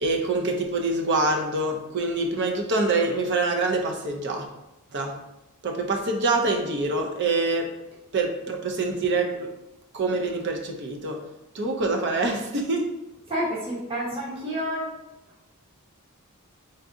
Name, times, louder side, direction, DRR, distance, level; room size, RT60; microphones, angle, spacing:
voice 1, 0.0-4.4 4.9-5.1 5.6-7.7 8.1-9.5 9.9-11.2 11.5-12.9, right 3 dB, 55° right, 3 dB, 0.6 m, -25 dB
voice 2, 13.3-14.9, equal, 25° right, -7 dB, 1.1 m, -29 dB
3.9 x 3.6 x 2.6 m, 0.95 s
head